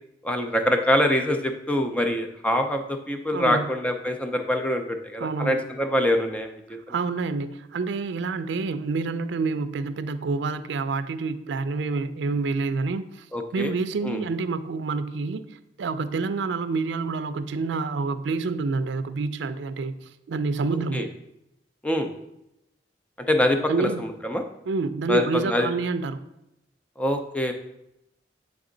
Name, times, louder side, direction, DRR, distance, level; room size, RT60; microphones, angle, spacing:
voice 1, 0.2-6.6 13.3-13.7 14.0-14.2 20.9-21.1 21.8-22.1 23.3-24.4 25.1-25.7 27.0-27.5, left 1 dB, 5° left, 5 dB, 0.5 m, -24 dB
voice 2, 3.3-3.7 5.2-5.6 6.9-13.2 13.5-15.4 15.8-19.9 20.3-21.1 23.7-24.0 24.7-26.2, right 4 dB, 80° right, 12 dB, 0.4 m, -28 dB
8.1 x 3.5 x 3.8 m, 0.86 s
head